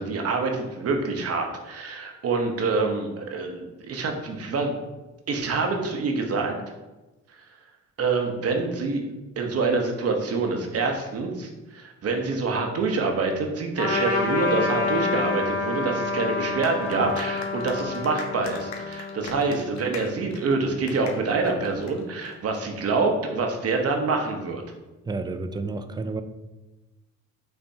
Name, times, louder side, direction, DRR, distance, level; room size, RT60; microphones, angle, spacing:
voice 1, 0.0-4.7 5.3-6.5 8.0-9.0 9.4-24.6, right 3 dB, 50° right, 3 dB, 0.9 m, -26 dB
Trumpet, 13.8-19.6, left 3 dB, 50° left, 1.5 m, -28 dB
sound 1, 16.6-22.6, left 5 dB, 70° left, 0.7 m, -42 dB
voice 2, 25.1-26.2, right 3 dB, 15° right, 9 dB, 0.3 m, -30 dB
5.3 x 3.4 x 2.7 m, 1.1 s
cardioid pair, 90°, 30 cm